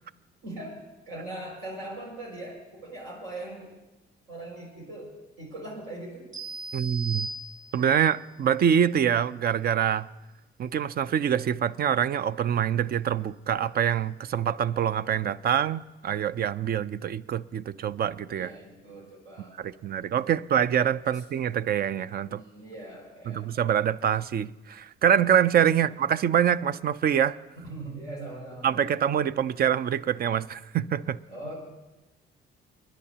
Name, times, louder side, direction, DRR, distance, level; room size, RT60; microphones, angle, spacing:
voice 1, 0.4-3.7 4.3-6.3 18.4-19.7 21.1-21.2 22.4-23.5 27.6-28.9 31.3-31.5, right 2 dB, 85° right, 5.8 m, -41 dB
sound 1, 6.3-8.1, right 2 dB, 35° right, 5.2 m, -37 dB
voice 2, 6.7-7.3 7.7-10.1 10.6-18.5 19.6-22.4 23.3-27.4 28.6-31.2, right 9 dB, 50° right, 0.4 m, -25 dB
30.0 x 10.0 x 2.9 m
cardioid pair, 90°, 20 cm